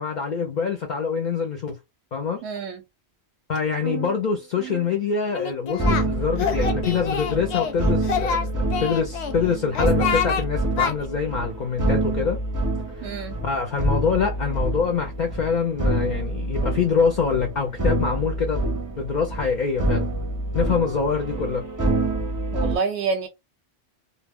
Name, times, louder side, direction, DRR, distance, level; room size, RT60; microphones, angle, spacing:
voice 1, 0.0-1.8 2.1-2.4 3.5-12.4 13.0-13.1 13.4-18.7 18.9-20.1 20.5-21.6, left 5 dB, 55° left, 0.6 m, -25 dB
voice 2, 2.4-2.8 13.0-13.4 22.5-23.3, right 4 dB, 90° right, 0.9 m, -27 dB
sound 1, 3.8-4.2 4.5-4.9 5.8-22.8, right 1 dB, 25° right, 0.5 m, -27 dB
Singing, 5.3-6.1 6.4-7.7 8.0-9.3 9.7-10.4 10.8-10.9, left 7 dB, 80° left, 0.8 m, -26 dB
2.2 x 2.1 x 3.4 m
omnidirectional pair, 1.1 m